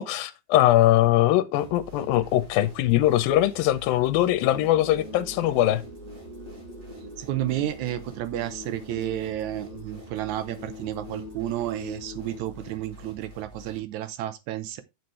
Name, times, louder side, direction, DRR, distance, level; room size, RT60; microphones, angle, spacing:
voice 1, 0.0-5.8, left 14 dB, 80° left, 2.5 m, -21 dB
sound 1, 1.6-13.8, equal, 55° right, 6.9 m, -48 dB
sound 2, 4.3-13.3, left 2 dB, 20° right, 1.1 m, -43 dB
voice 2, 7.2-14.8, right 13 dB, 85° right, 1.6 m, -31 dB
9.2 x 7.9 x 3.1 m
omnidirectional pair, 4.3 m